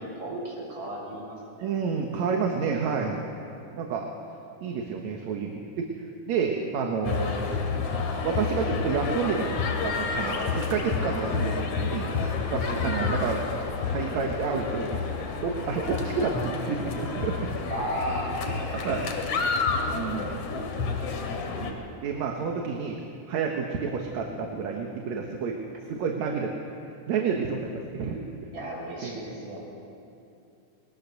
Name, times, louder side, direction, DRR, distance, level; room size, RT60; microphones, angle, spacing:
voice 1, 0.0-1.7 12.6-12.7 17.7-18.3 18.6-19.0 28.5-29.6, right 1 dB, 35° right, -3 dB, 7.0 m, -35 dB
voice 2, 1.6-3.2 3.7-4.1 4.6-5.9 6.3-7.4 8.2-9.5 9.8-12.1 12.5-13.4 13.8-15.0 15.4-17.5 18.7-19.1 19.9-20.4 21.5-23.0 23.3-25.6 25.9-26.5 27.1-28.2 29.0-29.1, right 5 dB, 65° right, 1 dB, 2.6 m, -29 dB
sound 1, 7.0-21.7, left 4 dB, 65° left, 3.3 m, -29 dB
23.5 x 20.5 x 6.8 m, 2.6 s
omnidirectional pair, 3.6 m